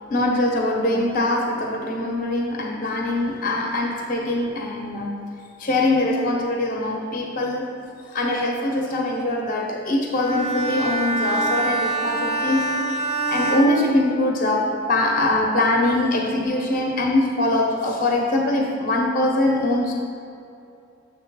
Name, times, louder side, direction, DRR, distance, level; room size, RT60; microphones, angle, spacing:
voice 1, 0.1-5.2 5.6-7.7 8.1-12.8 13.3-20.0, left 1 dB, 40° left, 0 dB, 0.7 m, -22 dB
Bowed string instrument, 10.1-14.6, right 2 dB, 30° right, 0.5 m, -26 dB
7.0 x 3.3 x 6.0 m, 2.6 s
head